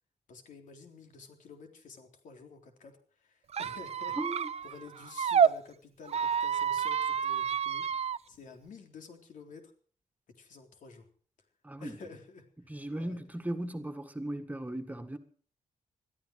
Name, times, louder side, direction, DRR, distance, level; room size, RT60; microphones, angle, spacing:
voice 1, 0.3-4.2 4.6-9.7 10.4-11.1 11.8-12.4 13.0-13.2, left 4 dB, 85° left, 3.8 m, -50 dB
Squeak, 3.5-5.5 6.1-8.2, right 7 dB, 55° right, 0.7 m, -29 dB
voice 2, 4.2-4.5 11.6-12.0 12.7-15.2, right 1 dB, 10° right, 1.7 m, -37 dB
21.0 x 13.5 x 4.8 m
wide cardioid pair, 130°, 13 cm